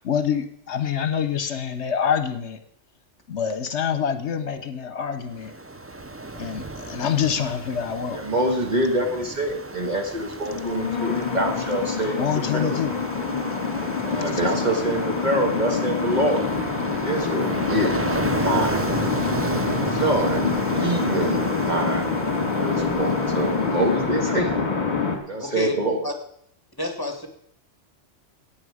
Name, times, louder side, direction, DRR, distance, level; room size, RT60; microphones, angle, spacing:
voice 1, 0.0-2.6 3.3-5.5 6.4-8.3 12.2-13.0 14.3-14.4, left 8 dB, 70° left, 1.1 m, -26 dB
Ocean, 5.3-24.4, right 2 dB, 20° right, 0.3 m, -34 dB
voice 2, 8.1-12.9 14.0-16.4 17.0-18.8 19.9-22.1 22.5-24.5 25.3-26.1, right 1 dB, 35° right, 1.9 m, -25 dB
sound 1, 10.5-25.2, left 5 dB, 40° left, 2.0 m, -26 dB
sound 2, 17.8-22.8, right 6 dB, 60° right, 1.9 m, -37 dB
voice 3, 25.4-25.7 26.0-26.1 26.8-27.3, left 1 dB, 20° left, 1.9 m, -27 dB
14.5 x 9.0 x 4.9 m
omnidirectional pair, 1.2 m